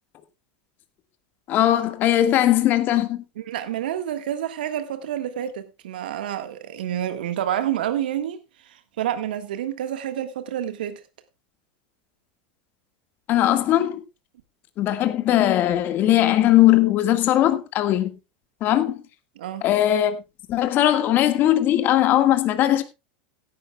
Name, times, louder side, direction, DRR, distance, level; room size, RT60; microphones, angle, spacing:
voice 1, 1.5-3.2 13.3-14.0 14.8-18.1 18.6-19.0 19.6-20.2 20.5-22.8, left 13 dB, 40° left, 1.8 m, -19 dB
voice 2, 3.4-8.4 8.7-11.0 19.3-19.6, right 11 dB, 85° right, 1.6 m, -28 dB
16.5 x 11.0 x 2.3 m
supercardioid pair, 120°, 5 cm